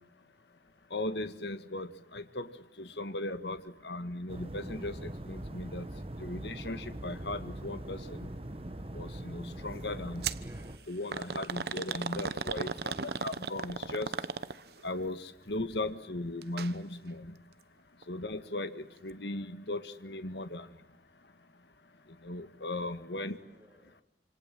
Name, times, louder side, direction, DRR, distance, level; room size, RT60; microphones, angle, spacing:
voice 1, 0.9-2.5 2.8-5.9 6.2-8.3 8.9-10.2 10.9-14.1 14.8-17.3 18.1-20.7 22.2-23.4, left 2 dB, 75° left, 10 dB, 1.8 m, -37 dB
sound 1, 4.3-10.8, right 1 dB, 30° right, 1.1 m, -42 dB
sound 2, 10.2-10.5 11.1-14.8 16.4-16.7 17.1-17.2 18.0-18.1, right 4 dB, 65° right, 1.0 m, -35 dB
voice 2, 10.4-10.8 12.5-13.5 23.3-23.9, right 1 dB, 10° right, 4 dB, 3.3 m, -56 dB
28.0 x 27.0 x 7.7 m, 0.82 s
head